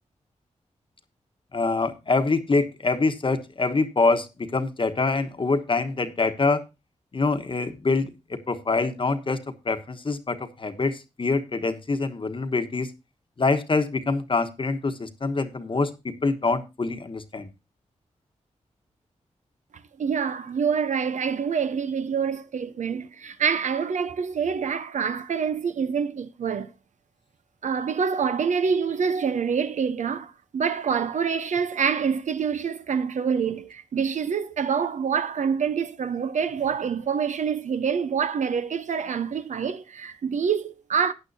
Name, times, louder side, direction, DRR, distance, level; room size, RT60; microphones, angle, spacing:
voice 1, 1.5-4.3 4.5-6.6 7.1-12.9 13.4-17.5, left 3 dB, 40° left, 1.2 m, -25 dB
voice 2, 20.0-26.7 27.6-41.1, right 6 dB, 75° right, 0.8 m, -26 dB
14.5 x 9.1 x 2.7 m
cardioid pair, 60°, 13 cm